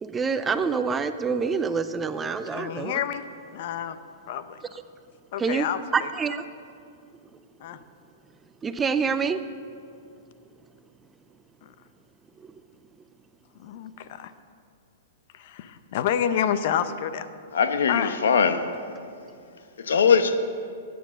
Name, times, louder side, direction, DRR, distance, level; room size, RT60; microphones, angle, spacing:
voice 1, 0.0-3.0 4.7-4.8 5.4-5.7 5.9-6.4 7.7-7.8 8.6-9.4 12.4-12.5, right 5 dB, 10° right, 0.4 m, -26 dB
voice 2, 2.5-3.2 3.5-4.0 4.3-4.4 5.3-5.8 7.6-7.8 13.6-14.3 15.4-17.3 17.9-18.1, left 9 dB, 45° left, 0.6 m, -28 dB
voice 3, 17.5-18.6 19.9-20.4, left 6 dB, 90° left, 1.0 m, -20 dB
12.5 x 9.5 x 6.3 m
hypercardioid pair, 160°, 0 cm